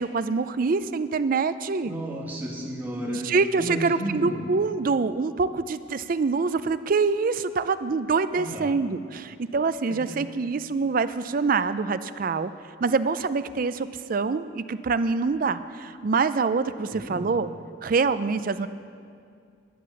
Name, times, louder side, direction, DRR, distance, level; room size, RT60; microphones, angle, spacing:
voice 1, 0.0-1.9 3.3-12.5 12.8-17.5 17.8-18.7, right 4 dB, 45° right, 13 dB, 0.4 m, -25 dB
voice 2, 1.8-4.6 8.3-8.8 9.9-10.2 16.9-17.3, equal, 10° right, -5 dB, 2.0 m, -33 dB
11.0 x 10.0 x 7.0 m, 2.3 s
head